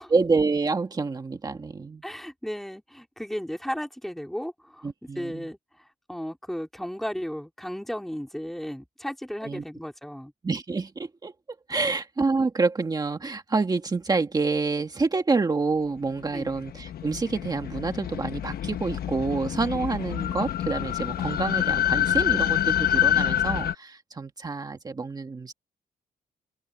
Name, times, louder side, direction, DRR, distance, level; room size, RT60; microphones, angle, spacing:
voice 1, 0.1-2.0 4.8-5.5 9.4-9.6 10.4-11.3 11.7-25.5, right 4 dB, 25° right, 1.7 m, -27 dB
voice 2, 2.0-4.9 5.1-10.3 11.7-11.8 16.3-16.5, equal, ahead, 3.4 m, -35 dB
sound 1, 16.3-23.7, left 11 dB, 65° left, 0.9 m, -26 dB
open air
wide cardioid pair, 150°, 17 cm